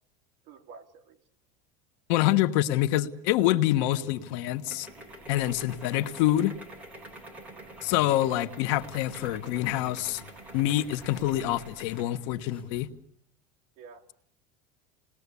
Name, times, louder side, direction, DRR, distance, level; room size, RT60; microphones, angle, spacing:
voice 1, 0.4-1.2 7.3-7.7 13.8-14.1, right 5 dB, 45° right, 2.8 m, -50 dB
voice 2, 2.1-4.9 5.3-6.5 7.8-10.2 10.5-12.9, left 14 dB, 65° left, 1.4 m, -26 dB
sound 1, 3.4-12.2, right 1 dB, 10° right, 7.2 m, -47 dB
sound 2, 7.8-12.9, left 3 dB, 5° left, 6.7 m, -51 dB
28.0 x 20.5 x 8.4 m
cardioid pair, 165°, 18 cm